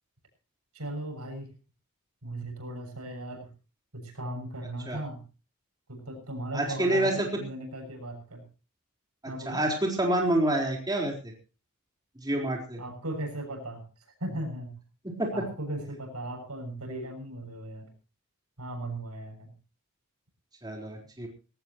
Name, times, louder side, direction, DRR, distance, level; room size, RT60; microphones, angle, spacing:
voice 1, 0.7-1.5 2.2-3.5 3.9-5.2 5.9-8.4 9.3-9.6 12.8-14.8 15.3-17.9 18.6-19.5, right 1 dB, 90° right, 5 dB, 7.2 m, -37 dB
voice 2, 6.5-7.3 9.5-11.1 12.2-12.8 15.0-15.3 20.6-21.3, right 1 dB, 20° right, 0 dB, 4.1 m, -27 dB
19.5 x 17.5 x 3.0 m, 0.34 s
head